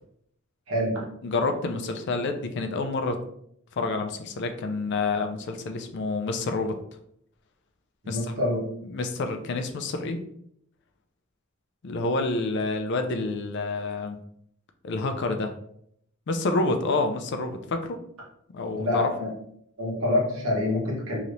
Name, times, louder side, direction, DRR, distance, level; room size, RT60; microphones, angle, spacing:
voice 1, 0.7-1.0 8.0-8.7 18.8-19.3 19.8-21.2, left 1 dB, 70° right, -3 dB, 1.1 m, -26 dB
voice 2, 1.2-3.2 3.8-6.8 8.1-8.2 8.9-10.2 11.8-14.2 14.8-15.5 16.3-18.0 18.5-19.1, left 3 dB, 55° left, 6 dB, 0.4 m, -28 dB
3.1 x 2.8 x 2.6 m, 0.70 s
head